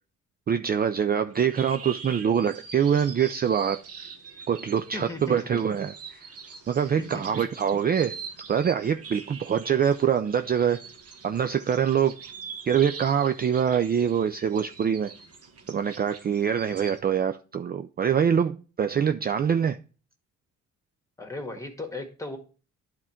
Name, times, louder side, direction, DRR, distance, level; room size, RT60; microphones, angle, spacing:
voice 1, 0.5-4.1 4.5-6.3 6.7-8.2 8.5-10.8 11.2-12.1 12.7-15.1 15.7-19.8, right 8 dB, 30° right, 0.4 m, -24 dB
sound 1, 1.3-17.0, right 6 dB, 50° right, 1.4 m, -44 dB
voice 2, 4.9-5.4 7.0-7.4 21.2-22.4, left 2 dB, 10° left, 1.7 m, -37 dB
9.8 x 3.7 x 4.4 m
cardioid pair, 90°, 30 cm